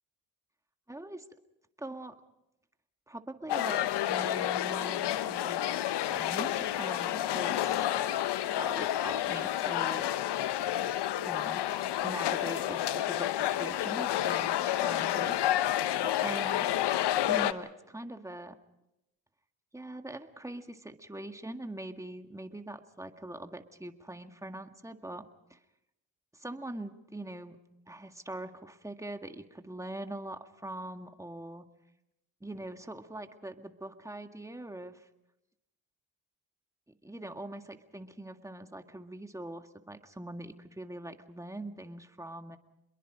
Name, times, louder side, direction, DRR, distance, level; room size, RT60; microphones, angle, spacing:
voice 1, 0.9-1.2 1.8-2.2 3.1-3.8 4.1-7.8 8.6-10.2 11.2-11.6 12.0-15.7 16.0-16.7 17.3-18.6 19.7-25.6 26.3-27.6 27.9-31.7 32.4-35.1 36.9-42.6, right 1 dB, 5° right, 7 dB, 1.8 m, -42 dB
sound 1, 3.5-17.5, left 12 dB, 70° left, 1.0 m, -30 dB
27.5 x 22.0 x 5.1 m, 0.88 s
supercardioid pair, 55°, 42 cm